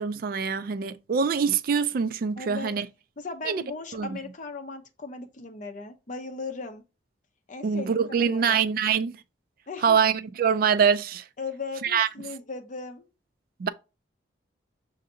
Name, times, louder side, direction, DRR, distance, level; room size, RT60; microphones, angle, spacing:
voice 1, 0.0-2.9 3.5-3.6 3.9-4.2 7.6-9.2 9.8-11.2 11.8-12.1 13.6-13.7, right 6 dB, 50° right, 0.3 m, -24 dB
voice 2, 2.4-2.7 3.2-6.8 7.5-7.9 8.3-8.6 9.7-10.0 11.4-13.1, left 3 dB, 40° left, 0.6 m, -37 dB
6.3 x 2.6 x 2.7 m
head